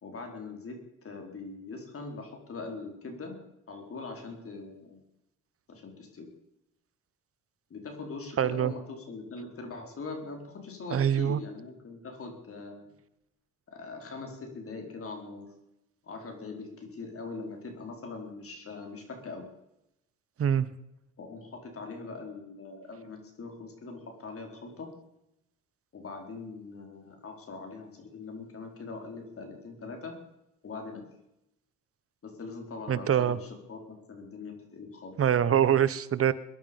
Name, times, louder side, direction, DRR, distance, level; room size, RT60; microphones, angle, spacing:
voice 1, 0.0-3.4 3.7-5.0 5.7-6.3 7.7-12.9 13.7-15.5 16.0-19.5 21.2-24.9 25.9-30.2 30.6-31.0 32.2-35.1, left 3 dB, 50° left, 3 dB, 4.5 m, -42 dB
voice 2, 8.4-8.7 10.9-11.4 20.4-20.7 32.9-33.4 35.2-36.3, right 9 dB, 50° right, 16 dB, 1.0 m, -24 dB
21.5 x 11.0 x 5.4 m, 0.86 s
cardioid pair, 90°, 30 cm